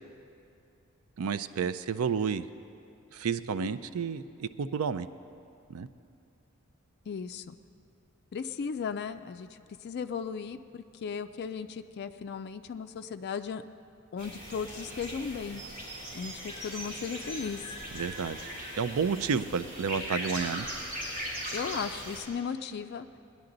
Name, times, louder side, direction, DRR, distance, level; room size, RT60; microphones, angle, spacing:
voice 1, 1.2-2.5 3.1-5.1 5.7-5.9 17.9-18.4 18.8-20.7, right 6 dB, 80° right, 13 dB, 0.4 m, -31 dB
voice 2, 7.1-7.6 8.3-9.5 9.8-13.6 14.1-15.6 16.1-17.8 21.5-23.1, left 6 dB, 50° left, 8 dB, 0.4 m, -36 dB
sound 1, 14.2-22.2, equal, 40° right, 3.1 m, -39 dB
19.0 x 10.5 x 3.9 m, 2.5 s
head